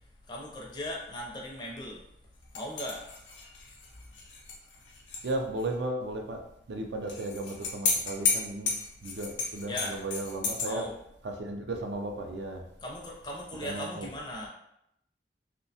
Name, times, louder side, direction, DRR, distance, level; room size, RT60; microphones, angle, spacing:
voice 1, 0.3-2.0 2.5-3.0 9.7-10.0 10.6-10.9 12.8-14.5, left 1 dB, 25° left, -2 dB, 0.4 m, -38 dB
sound 1, 2.5-5.3 5.6-5.7 7.1-10.7, left 4 dB, 90° left, 0.5 m, -32 dB
voice 2, 5.2-6.4 6.7-8.7 9.0-10.9 11.2-12.6 13.6-14.1, right 2 dB, 70° right, 3 dB, 0.4 m, -35 dB
2.6 x 2.1 x 2.7 m, 0.78 s
head